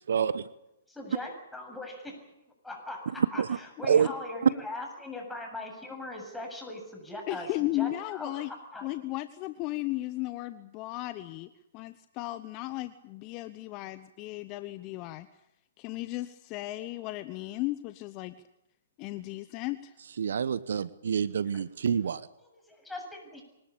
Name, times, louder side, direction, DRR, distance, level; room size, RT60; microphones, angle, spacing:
voice 1, 0.1-0.5 3.4-3.5 3.9-4.1 4.4-4.5 20.2-22.2, right 7 dB, 65° right, 18 dB, 0.9 m, -26 dB
voice 2, 0.9-2.3 2.6-7.5 7.7-8.9 22.0-23.4, left 2 dB, 5° left, 2 dB, 7.6 m, -40 dB
voice 3, 7.3-8.5 8.8-15.3 15.8-18.3 19.0-19.9 21.5-21.6, left 18 dB, 35° left, 13 dB, 1.0 m, -35 dB
25.0 x 19.0 x 8.7 m, 0.89 s
figure-of-eight pair, 125°, 0 cm